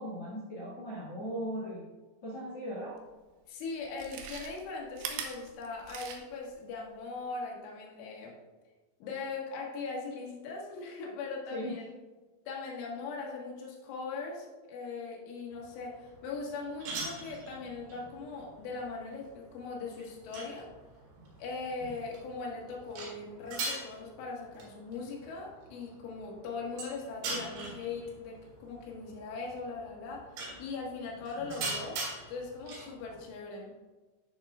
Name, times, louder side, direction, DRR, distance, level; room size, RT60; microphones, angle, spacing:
voice 1, 0.0-1.9 2.2-3.0 11.5-11.8, equal, 50° left, -8 dB, 1.9 m, -38 dB
Chewing mastication, 3.1-3.2 3.8-6.5 6.9-7.0, right 7 dB, 80° right, 3.2 m, -41 dB
voice 2, 3.5-8.3 9.0-11.9 12.5-20.7 21.4-30.3 30.6-32.0 32.3-33.7, left 4 dB, 80° left, -2 dB, 4.0 m, -40 dB
sound 1, 15.5-33.3, right 2 dB, 60° right, 3.8 m, -43 dB
13.5 x 6.6 x 2.4 m, 1.2 s
omnidirectional pair, 5.5 m